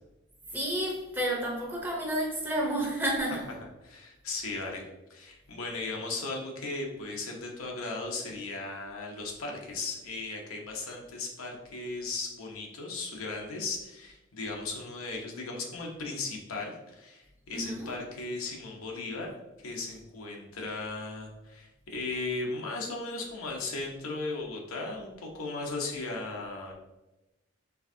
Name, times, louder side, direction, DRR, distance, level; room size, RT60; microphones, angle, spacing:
voice 1, 0.5-3.4 17.5-17.9, right 1 dB, 10° right, -2 dB, 0.7 m, -30 dB
voice 2, 3.8-4.8 5.1-19.3 19.6-26.7, left 3 dB, 85° left, 0 dB, 0.9 m, -36 dB
4.6 x 3.5 x 2.7 m, 1.0 s
head